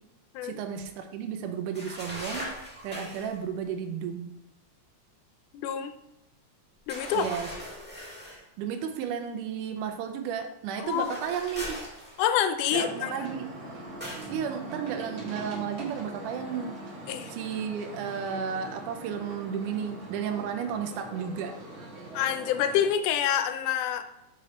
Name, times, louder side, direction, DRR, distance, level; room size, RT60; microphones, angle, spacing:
voice 1, 0.4-4.3 7.1-7.5 8.6-11.8 12.7-13.5 14.3-16.8 17.3-21.5, right 7 dB, 85° right, 5 dB, 2.2 m, -33 dB
sound 1, 1.7-3.4 6.9-8.4 10.8-12.5 14.0-14.4, equal, 10° right, 0.6 m, -40 dB
voice 2, 5.5-6.0 6.9-7.3 10.8-11.1 12.2-13.3 17.1-17.3 22.1-24.0, left 9 dB, 90° left, 9 dB, 2.1 m, -27 dB
sound 2, 12.7-22.9, right 1 dB, 50° right, 1.9 m, -42 dB
6.7 x 4.1 x 4.1 m, 0.92 s
omnidirectional pair, 3.6 m